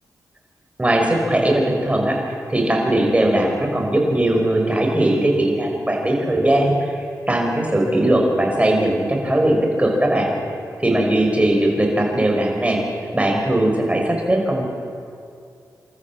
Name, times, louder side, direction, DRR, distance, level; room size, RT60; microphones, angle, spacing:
voice 1, 0.8-10.3 10.8-12.8 13.1-14.7, right 1 dB, 20° right, 1 dB, 5.6 m, -19 dB
27.5 x 13.5 x 7.5 m, 2.4 s
cardioid pair, 50°, 7 cm